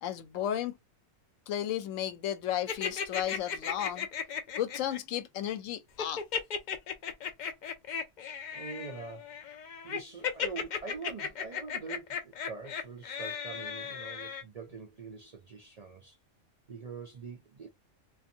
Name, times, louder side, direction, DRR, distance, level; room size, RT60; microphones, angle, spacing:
voice 1, 0.0-0.8 1.5-4.1 4.6-6.2, left 11 dB, 80° left, 1.0 m, -33 dB
sound 1, 2.7-5.0 6.0-14.4, left 7 dB, 60° left, 0.4 m, -36 dB
voice 2, 8.5-9.3 9.8-16.2 16.7-17.7, right 4 dB, 75° right, 0.3 m, -44 dB
2.5 x 2.4 x 2.6 m
omnidirectional pair, 1.3 m